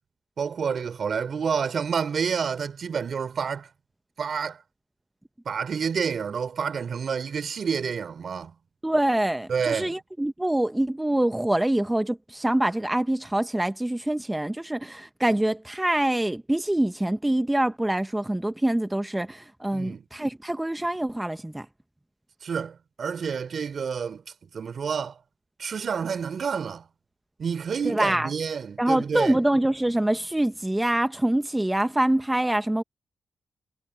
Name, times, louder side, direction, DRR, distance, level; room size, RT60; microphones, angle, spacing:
voice 1, 0.4-3.7 4.2-4.6 5.4-8.5 9.5-10.0 19.7-20.0 22.4-24.2 24.5-25.2 25.6-26.9 27.4-29.4, right 6 dB, 60° right, 4.1 m, -29 dB
voice 2, 8.8-21.7 27.8-28.3 28.8-32.8, right 1 dB, 10° right, 0.8 m, -25 dB
cardioid pair, 95°, 0 cm